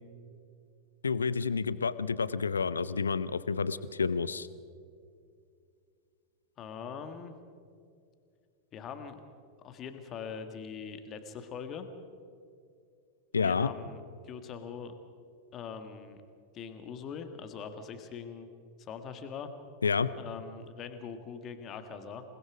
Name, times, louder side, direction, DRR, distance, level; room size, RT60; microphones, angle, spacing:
voice 1, 1.0-4.5 13.3-13.7 19.8-20.1, left 5 dB, 75° left, 16 dB, 0.7 m, -29 dB
voice 2, 6.6-7.3 8.7-9.2 9.6-11.9 13.3-14.9 15.5-16.2 16.5-18.5 18.8-19.5 20.1-22.2, left 6 dB, 30° left, 8 dB, 1.8 m, -42 dB
28.0 x 20.0 x 5.1 m, 2.3 s
figure-of-eight pair, 90°, 0 cm